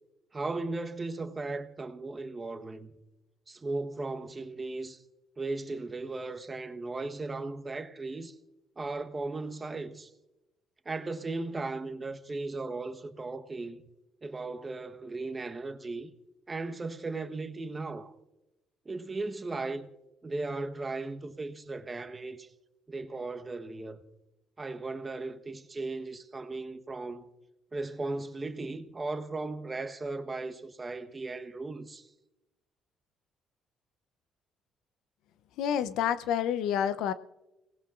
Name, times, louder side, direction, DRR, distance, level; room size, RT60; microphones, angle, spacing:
voice 1, 0.3-2.9 3.5-5.0 5.4-8.3 8.8-10.1 10.8-13.8 14.2-16.1 16.5-18.1 18.8-19.9 20.2-22.5 22.9-24.0 24.6-27.3 27.7-32.1, right 3 dB, 25° right, 1.1 m, -36 dB
voice 2, 35.6-37.1, left 9 dB, 80° left, 0.6 m, -28 dB
30.0 x 18.5 x 2.5 m
cardioid pair, 90°, 0 cm